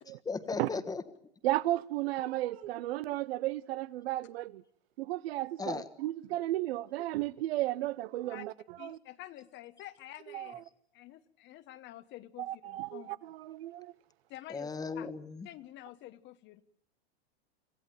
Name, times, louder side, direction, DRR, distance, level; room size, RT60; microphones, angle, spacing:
voice 1, 0.2-1.0 5.6-5.9 14.5-15.5, left 4 dB, 10° left, 1.5 m, -36 dB
voice 2, 1.4-4.6 5.0-9.0 10.3-10.6 12.4-13.9, right 16 dB, 70° right, 0.9 m, -34 dB
voice 3, 8.8-10.6 10.9-13.1 14.3-15.1 15.4-16.6, left 14 dB, 35° left, 1.2 m, -49 dB
26.5 x 15.5 x 9.1 m
supercardioid pair, 135°, 31 cm